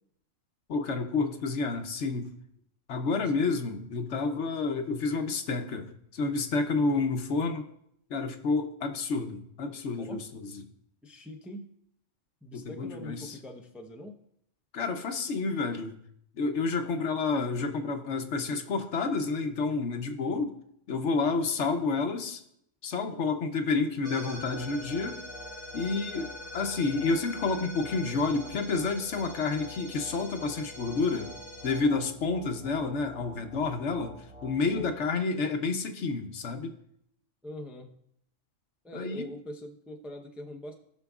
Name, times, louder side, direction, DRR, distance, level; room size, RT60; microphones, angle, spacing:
voice 1, 0.7-2.3 2.9-7.6 8.1-10.6 12.5-13.3 14.7-16.0 16.3-20.5 20.9-22.4 22.8-25.2 25.7-31.3 31.6-34.1 34.4-36.7 38.9-39.3, left 4 dB, 70° left, 7 dB, 1.1 m, -29 dB
voice 2, 11.0-11.7 12.4-14.2 34.7-35.0 37.4-37.9 38.8-40.7, left 1 dB, ahead, 2 dB, 0.6 m, -42 dB
sound 1, 24.0-34.8, equal, 50° right, 2.0 m, -44 dB
18.0 x 6.1 x 2.4 m, 0.72 s
omnidirectional pair, 1.3 m